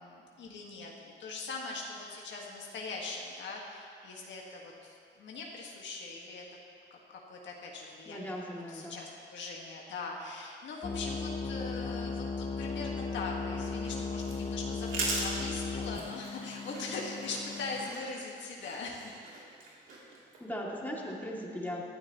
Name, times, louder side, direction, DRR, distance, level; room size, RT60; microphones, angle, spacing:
voice 1, 0.0-6.4 6.9-19.2, left 3 dB, 65° left, -1 dB, 1.7 m, -41 dB
voice 2, 8.1-9.0 20.4-21.9, equal, 10° left, -4 dB, 2.5 m, -38 dB
sound 1, 10.8-17.9, left 4 dB, 25° left, 0.8 m, -36 dB
sound 2, 13.5-20.4, right 2 dB, 75° right, 3.0 m, -40 dB
18.5 x 12.0 x 3.0 m, 2.3 s
cardioid pair, 90°, 20 cm